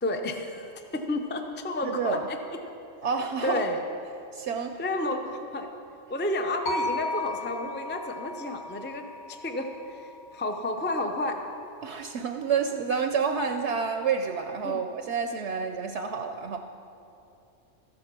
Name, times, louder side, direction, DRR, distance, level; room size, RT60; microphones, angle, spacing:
voice 1, 0.0-2.4 3.4-3.8 4.8-5.7 6.1-11.4 14.6-14.8, left 2 dB, 15° left, 4 dB, 0.4 m, -31 dB
voice 2, 1.8-2.3 3.0-3.6 4.3-4.8 11.8-16.6, right 6 dB, 65° right, 6 dB, 0.8 m, -29 dB
sound 1, 6.7-10.9, left 2 dB, 70° left, 1.4 m, -36 dB
13.5 x 7.8 x 6.1 m, 2.7 s
omnidirectional pair, 1.3 m